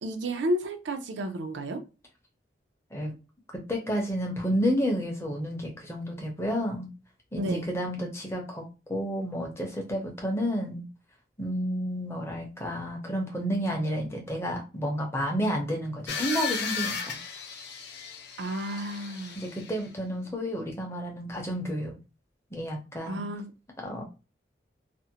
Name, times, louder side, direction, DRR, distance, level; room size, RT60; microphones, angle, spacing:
voice 1, 0.0-1.8 7.4-7.7 18.4-19.4 23.1-23.5, right 1 dB, 85° right, 0.5 m, -31 dB
voice 2, 3.5-6.9 7.3-8.6 8.9-10.8 11.4-17.2 19.4-21.9 22.5-23.2 23.8-24.0, equal, 15° left, 0.6 m, -30 dB
sound 1, 16.1-19.9, left 6 dB, 70° left, 0.6 m, -35 dB
2.5 x 2.1 x 2.7 m
head